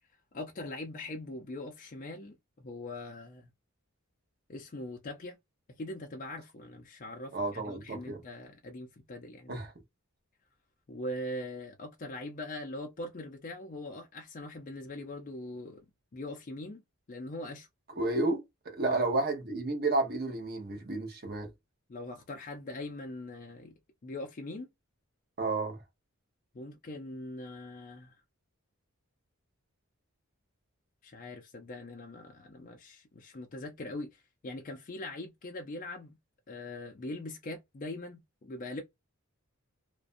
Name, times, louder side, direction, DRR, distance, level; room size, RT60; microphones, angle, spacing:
voice 1, 0.3-3.5 4.5-5.4 5.7-9.6 10.9-15.8 16.1-16.8 17.1-17.7 18.9-19.0 21.9-24.7 26.5-28.1 31.0-36.2 36.5-38.8, left 1 dB, 40° left, 0.4 m, -42 dB
voice 2, 7.3-8.2 9.5-9.7 18.0-18.4 18.8-21.5 25.4-25.8, right 2 dB, 45° right, 0.8 m, -31 dB
2.5 x 2.1 x 2.4 m
head